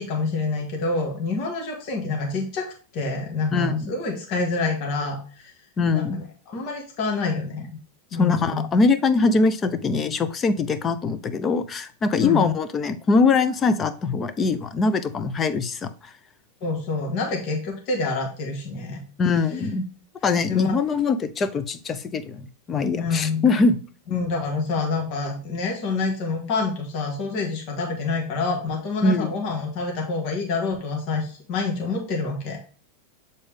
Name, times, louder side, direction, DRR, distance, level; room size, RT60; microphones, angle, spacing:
voice 1, 0.0-2.7 2.9-5.5 5.9-7.7 8.1-8.6 12.2-12.5 16.6-19.0 20.5-20.7 22.9-23.6 24.1-32.6, left 3 dB, 50° left, 0 dB, 2.0 m, -27 dB
voice 2, 3.5-3.9 5.8-6.2 8.2-15.9 19.2-19.9 20.2-23.8 29.0-29.3, left 4 dB, 25° left, 12 dB, 0.7 m, -22 dB
7.1 x 4.1 x 3.6 m, 0.40 s
supercardioid pair, 130°, 0 cm